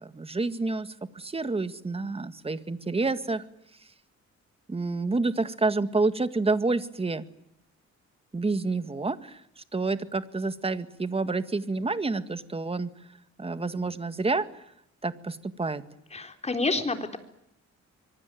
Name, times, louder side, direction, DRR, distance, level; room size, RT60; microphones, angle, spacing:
voice 1, 0.0-3.4 4.7-7.2 8.3-12.9 13.4-14.5 15.0-15.8, right 3 dB, 20° right, 11 dB, 1.9 m, -28 dB
voice 2, 16.1-17.2, left 3 dB, 20° left, 6 dB, 4.0 m, -28 dB
25.0 x 24.0 x 9.3 m, 0.78 s
cardioid pair, 120°, 29 cm